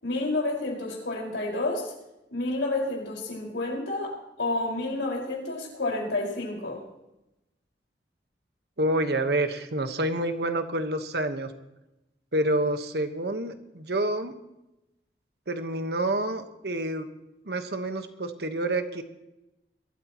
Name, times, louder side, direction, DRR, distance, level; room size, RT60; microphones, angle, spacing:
voice 1, 0.0-1.9 2.3-6.8, left 2 dB, 90° left, -1 dB, 5.0 m, -30 dB
voice 2, 8.8-11.5 12.3-14.3 15.5-17.0 17.4-19.0, right 1 dB, 65° right, 8 dB, 1.3 m, -28 dB
22.0 x 14.0 x 3.0 m, 0.91 s
head